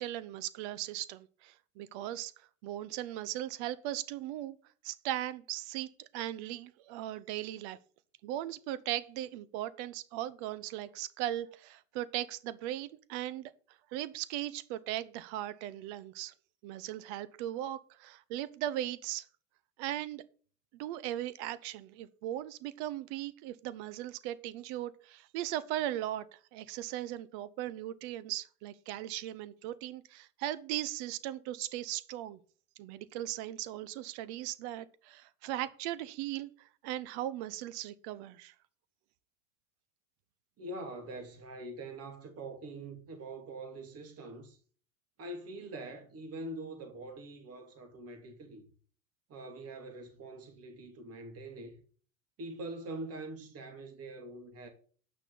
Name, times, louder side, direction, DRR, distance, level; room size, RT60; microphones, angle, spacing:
voice 1, 0.0-2.3 2.6-4.6 4.8-7.8 8.2-13.5 13.9-16.3 16.6-19.2 19.8-20.2 20.7-32.4 32.8-36.5 36.8-38.5, right 13 dB, 55° right, 1.0 m, -38 dB
voice 2, 40.6-44.6 45.2-48.7 49.3-51.8 52.4-54.7, right 2 dB, 35° right, 2.5 m, -44 dB
9.0 x 6.0 x 8.2 m
hypercardioid pair, 90°, 40 cm